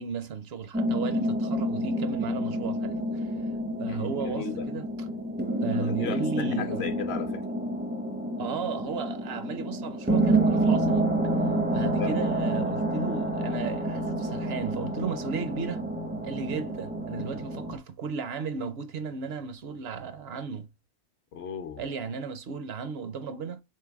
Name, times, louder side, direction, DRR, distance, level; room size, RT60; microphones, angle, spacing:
voice 1, 0.0-3.3 3.8-4.9 5.6-6.9 8.4-11.1 11.7-15.8 16.2-20.7 21.8-23.6, right 5 dB, 65° right, 0.8 m, -35 dB
sound 1, 0.7-17.8, right 1 dB, 15° right, 0.4 m, -28 dB
voice 2, 3.9-4.7 5.7-7.5 12.0-12.2 21.3-21.8, left 7 dB, 65° left, 0.9 m, -35 dB
3.8 x 3.3 x 3.4 m
omnidirectional pair, 1.2 m